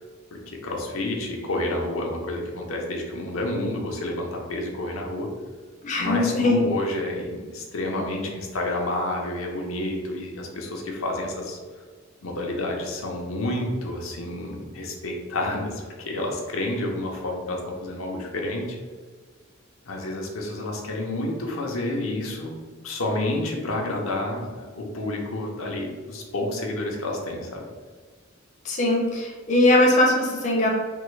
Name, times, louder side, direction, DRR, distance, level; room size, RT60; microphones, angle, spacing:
voice 1, 0.3-5.3 6.0-11.6 12.2-18.8 19.8-22.5 22.8-27.7, left 1 dB, 85° left, 0 dB, 0.6 m, -29 dB
voice 2, 5.8-6.6 28.7-30.7, left 1 dB, 35° left, -1 dB, 0.5 m, -20 dB
3.5 x 2.1 x 3.1 m, 1.5 s
head